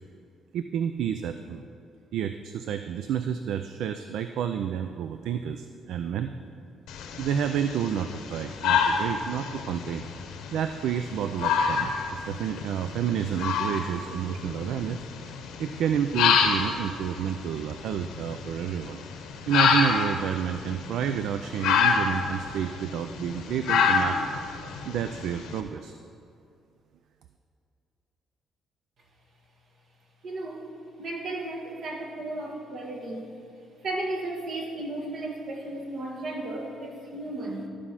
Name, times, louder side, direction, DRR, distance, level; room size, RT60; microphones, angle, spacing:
voice 1, 0.5-1.6 2.1-6.3 7.2-10.1 10.5-15.0 15.6-19.0 19.5-24.2 24.8-25.9, right 8 dB, 80° right, 8 dB, 0.3 m, -30 dB
sound 1, 6.9-25.6, left 6 dB, 90° left, 0.9 m, -28 dB
voice 2, 30.2-30.7 31.0-33.3 33.8-37.7, right 2 dB, 65° right, 1 dB, 1.5 m, -34 dB
13.0 x 4.9 x 5.6 m, 2.4 s
cardioid pair, 85°, 0 cm